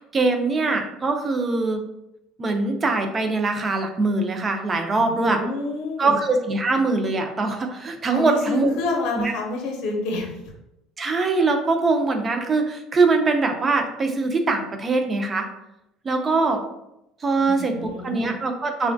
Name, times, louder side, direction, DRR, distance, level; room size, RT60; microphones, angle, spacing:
voice 1, 0.1-1.8 2.4-5.4 6.0-8.7 9.2-9.3 11.0-15.5 16.0-16.6 17.2-18.9, right 3 dB, 20° right, 5 dB, 0.3 m, -22 dB
voice 2, 5.0-6.1 8.1-10.3 17.4-18.4, left 3 dB, 70° left, 1 dB, 0.6 m, -28 dB
3.1 x 2.1 x 2.5 m, 0.87 s
cardioid pair, 160°, 0 cm